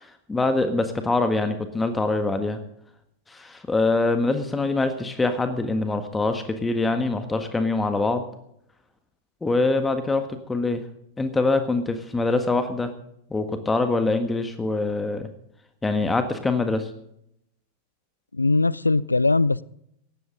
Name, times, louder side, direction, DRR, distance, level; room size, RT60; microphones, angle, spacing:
voice 1, 0.0-2.6 3.3-8.2 9.4-10.8 11.2-12.9 13.3-15.3 15.8-16.9, left 3 dB, 10° left, 8 dB, 1.7 m, -24 dB
voice 2, 18.3-19.6, left 3 dB, 80° left, 23 dB, 0.4 m, -20 dB
19.0 x 15.0 x 3.9 m, 0.74 s
figure-of-eight pair, 90°, 0 cm